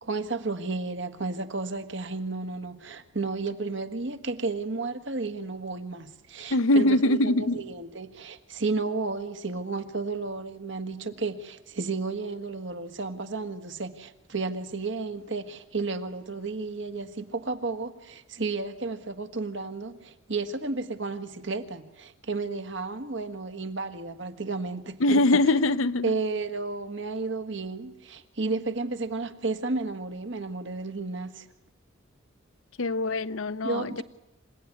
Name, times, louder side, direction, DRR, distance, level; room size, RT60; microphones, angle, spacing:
voice 1, 0.0-25.2 26.0-31.5 33.6-34.0, right 3 dB, 65° right, 1.6 m, -32 dB
voice 2, 6.5-7.6 25.0-26.1 32.8-34.0, left 2 dB, 85° left, 0.8 m, -23 dB
27.0 x 16.5 x 9.7 m
head